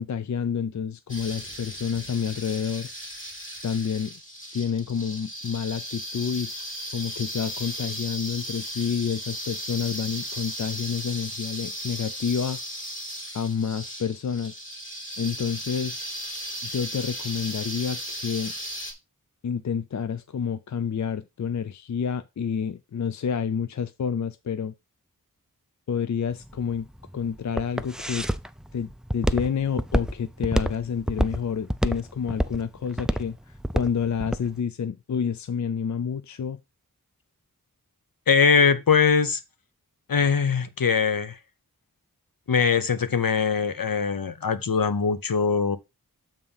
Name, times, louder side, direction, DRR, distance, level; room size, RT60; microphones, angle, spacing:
voice 1, 0.0-2.9 3.6-4.2 4.5-6.5 6.9-12.6 13.3-14.6 15.2-16.0 16.6-18.5 19.4-24.7 25.9-26.9 27.1-28.3 28.7-33.4 33.7-36.6, left 7 dB, 55° left, 0.5 m, -29 dB
sound 1, 1.1-18.9, equal, 35° left, 2.5 m, -36 dB
Walk footsteps, 26.3-34.5, equal, ahead, 0.4 m, -27 dB
voice 2, 38.3-39.4 40.1-41.4 42.5-45.8, left 5 dB, 70° left, 0.8 m, -22 dB
7.1 x 3.7 x 5.5 m
wide cardioid pair, 70°, 36 cm